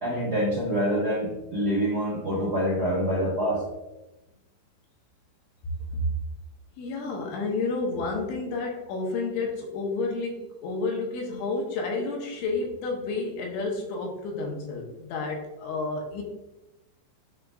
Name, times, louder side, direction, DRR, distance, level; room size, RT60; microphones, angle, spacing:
voice 1, 0.0-3.6, equal, 90° right, -8 dB, 0.8 m, -26 dB
voice 2, 6.8-16.2, left 3 dB, 80° left, 0 dB, 3.2 m, -30 dB
11.0 x 3.7 x 2.5 m, 0.99 s
omnidirectional pair, 5.6 m